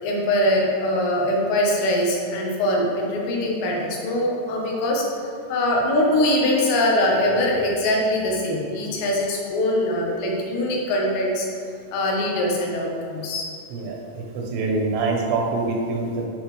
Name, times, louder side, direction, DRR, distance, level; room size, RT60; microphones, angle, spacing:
voice 1, 0.0-5.1 5.5-11.5 11.9-13.4, left 1 dB, 80° left, -2 dB, 3.4 m, -22 dB
voice 2, 13.7-16.3, right 3 dB, 85° right, 0 dB, 3.4 m, -25 dB
10.5 x 6.3 x 3.3 m, 2.4 s
omnidirectional pair, 5.0 m